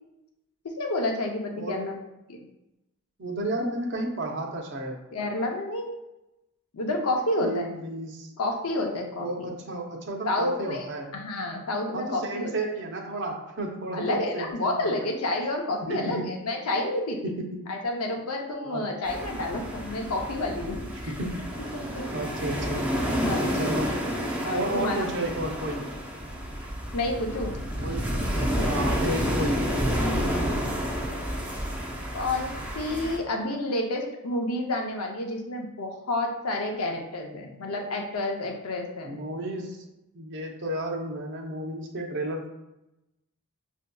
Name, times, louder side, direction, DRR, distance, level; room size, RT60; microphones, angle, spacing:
voice 1, 0.8-2.0 2.3-2.4 5.1-6.0 6.7-7.7 8.4-9.5 10.3-10.9 11.1-12.5 13.9-17.3 17.7-20.8 21.0-21.1 21.7-22.1 23.1-23.5 24.4-25.0 26.9-27.6 28.4-28.9 29.6-30.2 32.1-39.2, left 2 dB, 75° left, 2 dB, 0.6 m, -30 dB
voice 2, 1.6-1.9 3.2-5.0 7.4-8.3 9.2-11.1 11.9-15.1 15.9-16.4 17.2-17.7 18.6-18.9 21.1-21.5 22.1-22.9 23.5-23.9 24.5-25.9 27.8-28.2 28.7-29.7 39.0-39.8 40.1-42.5, right 1 dB, 55° right, 1 dB, 0.6 m, -32 dB
sound 1, 19.0-33.2, equal, 5° right, 0.5 m, -30 dB
6.0 x 2.6 x 2.2 m, 0.91 s
head